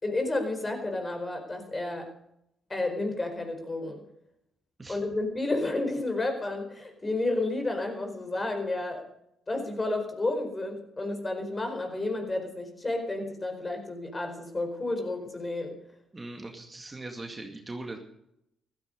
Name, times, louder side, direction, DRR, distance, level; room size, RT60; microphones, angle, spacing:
voice 1, 0.0-2.1 2.7-4.0 4.9-9.0 9.5-15.8, left 2 dB, 25° left, 5 dB, 4.8 m, -31 dB
voice 2, 16.1-18.0, right 2 dB, 25° right, 3 dB, 2.1 m, -40 dB
15.5 x 14.0 x 5.3 m, 0.79 s
cardioid pair, 85°, 0 cm